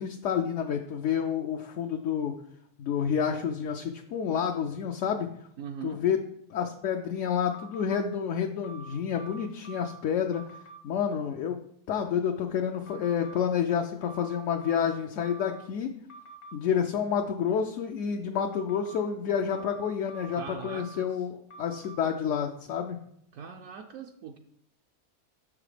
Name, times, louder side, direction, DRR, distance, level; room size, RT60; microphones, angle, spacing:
voice 1, 0.0-2.3 2.8-5.3 5.8-6.2 6.5-10.4 10.8-11.6 11.9-15.9 16.5-23.0, left 8 dB, 65° left, 3 dB, 0.8 m, -29 dB
voice 2, 5.6-6.0 20.3-21.2 23.3-24.4, right 7 dB, 70° right, 3 dB, 0.9 m, -41 dB
sound 1, 7.5-8.0 8.6-10.0 10.3-10.8 12.9-13.4 14.0-15.6 16.1-16.5 18.5-19.0 19.5-21.0 21.5-22.0, right 3 dB, 30° left, 0.5 m, -47 dB
6.6 x 5.0 x 4.9 m, 0.69 s
omnidirectional pair, 1.5 m